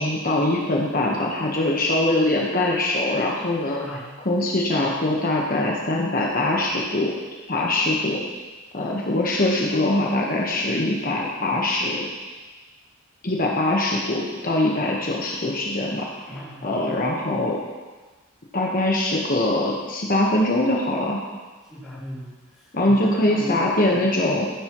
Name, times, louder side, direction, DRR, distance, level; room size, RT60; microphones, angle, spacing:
voice 1, 0.0-3.8 4.2-7.1 7.5-8.2 8.7-12.1 13.2-16.1 16.6-17.6 18.5-21.2 22.7-24.5, left 1 dB, 40° left, -2 dB, 1.2 m, -22 dB
voice 2, 3.8-4.1 16.3-17.0 21.7-24.0, equal, ahead, -13 dB, 3.5 m, -38 dB
15.0 x 10.5 x 3.1 m, 1.3 s
head